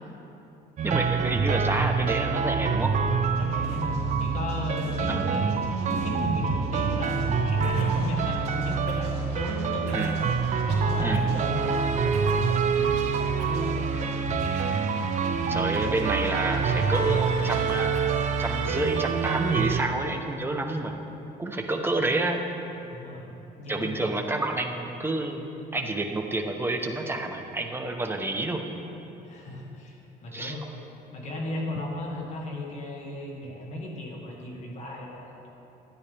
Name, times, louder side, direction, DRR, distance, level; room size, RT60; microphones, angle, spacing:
voice 1, 0.8-2.9 5.1-5.4 9.9-10.1 11.0-11.2 15.5-17.9 18.4-21.0 21.4-22.4 23.7-28.6 30.3-30.5, right 2 dB, 15° right, 3 dB, 0.9 m, -29 dB
sound 1, 0.8-19.8, right 5 dB, 45° right, 0.6 m, -26 dB
Scratching (performance technique), 2.8-18.7, right 3 dB, 75° right, 2.8 m, -38 dB
voice 2, 3.4-10.0 10.5-14.2 15.2-15.5 22.9-24.2 29.2-30.6 31.1-35.5, left 1 dB, 45° left, -1 dB, 2.0 m, -36 dB
13.0 x 9.9 x 3.4 m, 2.9 s
cardioid pair, 110°, 17 cm